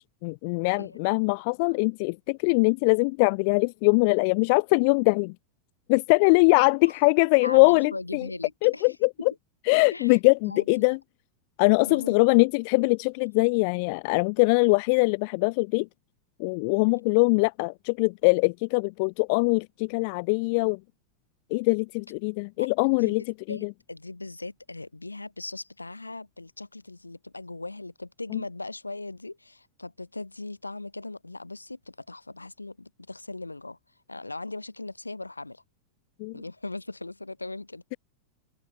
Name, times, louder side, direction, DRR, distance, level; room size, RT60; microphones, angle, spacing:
voice 1, 0.0-5.3 5.9-8.3 8.6-9.1 9.7-11.0 11.6-15.9 16.4-20.8 21.5-23.2 23.5-23.6 28.3-28.4 36.2-36.3, left 32 dB, 45° left, 0.6 m, -22 dB
voice 2, 0.8-1.1 6.8-6.9 7.4-9.0 9.9-11.0 11.8-12.2 16.9-17.0 22.6-23.2 23.5-33.8 34.1-35.6 36.3-37.8, left 2 dB, 80° left, 7.0 m, -39 dB
open air
figure-of-eight pair, 90°, 0 cm